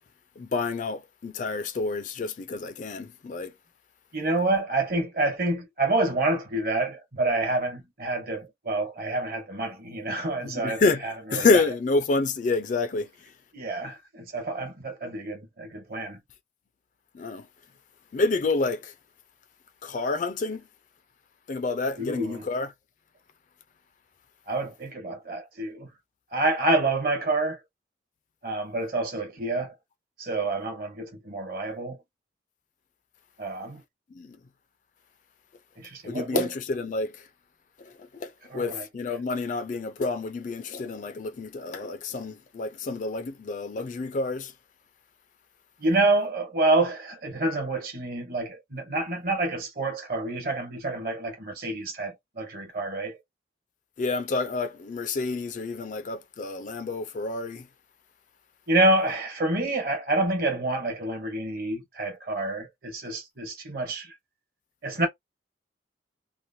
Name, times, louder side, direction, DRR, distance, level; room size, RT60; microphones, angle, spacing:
voice 1, 0.4-3.5 10.4-11.1 11.3-13.1 17.1-17.4 18.1-18.9 19.8-20.6 21.5-22.7 34.1-34.4 36.0-37.2 38.1-44.5 54.0-57.7, left 3 dB, 45° left, 0.4 m, -28 dB
voice 2, 4.1-11.6 13.5-16.2 22.0-22.5 24.5-25.9 26.3-27.6 28.4-29.7 30.2-32.0 33.4-33.8 35.8-36.5 38.5-39.2 45.8-53.2 58.7-64.1 64.8-65.1, right 2 dB, 50° right, 1.2 m, -28 dB
3.0 x 2.1 x 2.6 m
head